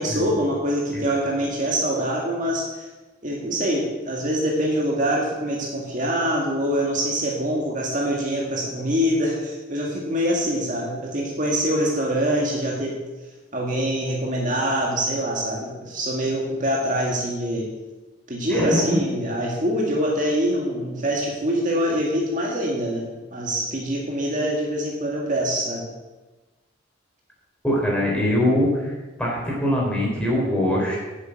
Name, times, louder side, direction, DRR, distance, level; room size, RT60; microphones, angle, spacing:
voice 1, 0.0-2.8 3.2-12.9 13.5-17.7 18.3-23.1 23.3-25.8, equal, 40° right, -2 dB, 1.9 m, -24 dB
voice 2, 18.5-18.8 27.6-31.0, left 1 dB, 5° left, -4 dB, 3.8 m, -23 dB
8.9 x 7.6 x 8.2 m, 1.2 s
head